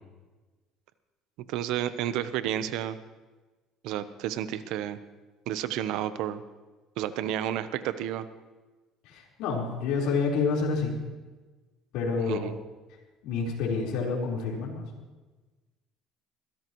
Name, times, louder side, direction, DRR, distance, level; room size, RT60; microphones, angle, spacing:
voice 1, 1.5-3.0 3.8-5.0 5.5-6.4 7.0-8.3 12.3-12.6, right 11 dB, 75° right, 12 dB, 0.8 m, -31 dB
voice 2, 9.0-11.0 11.9-12.5 13.2-14.8, left 4 dB, 80° left, -2 dB, 4.2 m, -28 dB
21.5 x 16.0 x 3.1 m, 1.2 s
cardioid pair, 110°, 0 cm